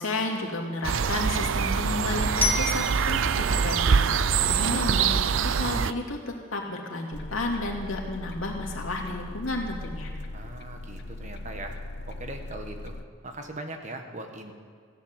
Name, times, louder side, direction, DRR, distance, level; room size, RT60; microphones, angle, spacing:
voice 1, 0.0-10.1, left 2 dB, 85° left, 0 dB, 2.5 m, -32 dB
sound 1, 0.8-5.9, right 6 dB, 70° right, 0.5 m, -24 dB
Glockenspiel, 2.4-5.3, left 2 dB, 10° left, 1.4 m, -32 dB
sound 2, 7.1-13.0, left 2 dB, 55° left, 0.7 m, -39 dB
voice 2, 10.3-11.8 12.1-13.0 13.2-14.5, right 2 dB, 35° right, 5 dB, 1.4 m, -40 dB
15.5 x 10.5 x 7.4 m, 2.1 s
head